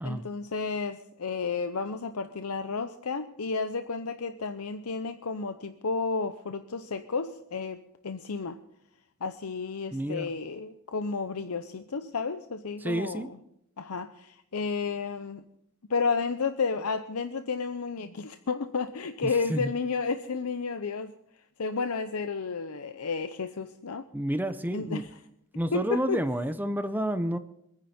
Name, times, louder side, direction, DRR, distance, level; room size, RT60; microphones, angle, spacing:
voice 1, 0.0-7.8 8.0-8.6 9.2-13.3 13.8-15.4 15.9-21.1 21.6-24.1 24.7-25.1 25.7-26.2, left 4 dB, 90° left, 9 dB, 0.7 m, -32 dB
voice 2, 9.9-10.3 12.8-13.3 19.5-19.7 24.1-25.0 25.5-27.4, right 1 dB, 10° right, 10 dB, 0.6 m, -29 dB
25.5 x 9.9 x 4.3 m, 0.78 s
head